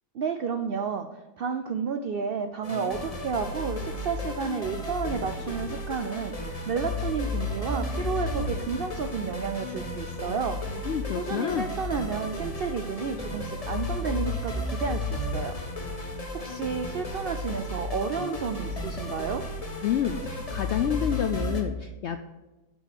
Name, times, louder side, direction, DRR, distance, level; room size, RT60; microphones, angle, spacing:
voice 1, 0.1-1.1 1.4-10.6 11.1-15.5 16.3-19.4, right 6 dB, 80° right, 7 dB, 0.5 m, -31 dB
sound 1, 2.6-21.6, left 2 dB, 25° left, 1.2 m, -33 dB
voice 2, 10.8-11.7 19.8-22.2, left 9 dB, 75° left, 8 dB, 0.6 m, -28 dB
9.1 x 5.4 x 6.6 m, 1.1 s
omnidirectional pair, 1.7 m